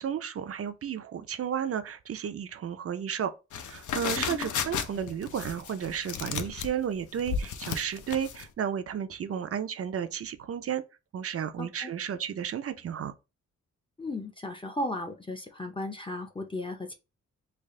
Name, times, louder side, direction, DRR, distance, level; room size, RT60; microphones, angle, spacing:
voice 1, 0.0-3.3 3.7-10.8 11.1-13.1, right 8 dB, 50° right, 0.4 m, -33 dB
sound 1, 3.5-8.4, left 7 dB, 75° left, 0.5 m, -34 dB
voice 2, 11.6-11.9 14.0-16.9, left 2 dB, 15° left, 0.5 m, -35 dB
3.3 x 2.4 x 3.5 m
wide cardioid pair, 140°, 31 cm